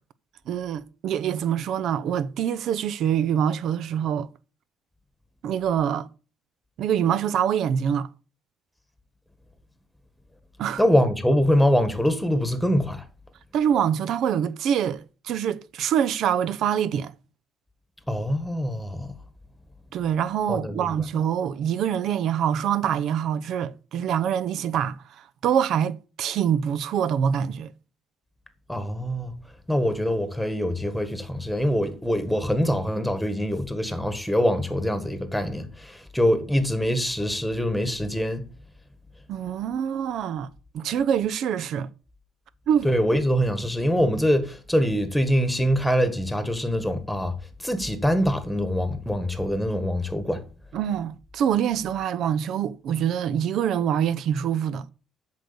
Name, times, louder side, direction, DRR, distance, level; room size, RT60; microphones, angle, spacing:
voice 1, 0.5-4.3 5.4-6.1 6.8-8.1 10.6-10.8 13.5-17.1 19.9-25.0 25.4-27.7 39.3-40.5 40.7-41.9 42.7-42.9 50.7-54.8, right 9 dB, 60° right, 0.7 m, -25 dB
voice 2, 10.8-13.0 18.1-19.1 20.5-20.9 28.7-29.3 29.7-38.4 42.8-47.3 47.6-50.4, equal, ahead, 1.6 m, -24 dB
8.3 x 6.6 x 6.9 m
cardioid pair, 135°, 0 cm